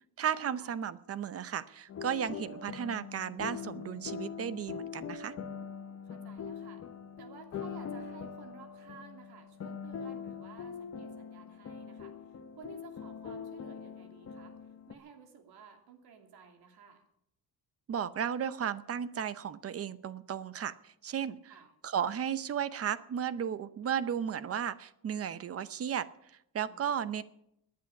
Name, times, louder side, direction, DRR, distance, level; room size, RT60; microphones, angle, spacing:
voice 1, 0.2-5.4 17.9-21.4 21.8-27.2, right 8 dB, 40° right, 15 dB, 0.7 m, -34 dB
sound 1, 1.9-14.9, left 6 dB, 40° left, 1.0 m, -42 dB
voice 2, 6.0-6.8 7.2-14.6 14.9-17.0 21.5-21.7 26.6-27.2, right 6 dB, 85° right, 4 dB, 2.9 m, -54 dB
18.5 x 10.5 x 7.0 m, 0.77 s
cardioid pair, 170°, 37 cm